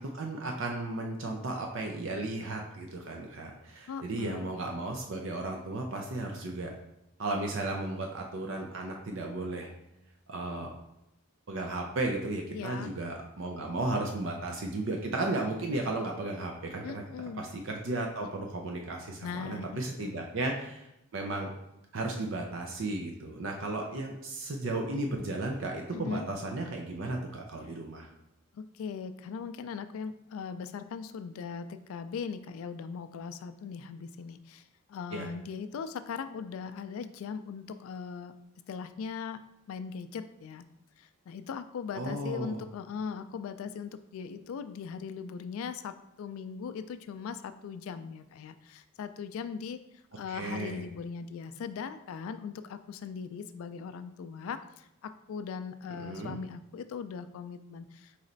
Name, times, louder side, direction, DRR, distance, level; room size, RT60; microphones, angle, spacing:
voice 1, 0.1-6.7 7.2-9.7 10.3-10.7 11.5-17.0 17.4-20.9 21.1-21.5 21.9-28.1 35.1-35.3 41.9-42.6 50.3-50.8 56.0-56.4, right 2 dB, 60° right, 2 dB, 0.5 m, -34 dB
voice 2, 3.9-4.5 12.5-12.9 16.8-17.4 19.2-20.3 25.9-26.3 28.5-34.6 34.9-38.3 38.7-39.4 39.7-40.6 41.0-49.8 50.2-58.2, left 6 dB, 75° left, 12 dB, 0.3 m, -39 dB
4.1 x 3.2 x 3.9 m, 0.85 s
head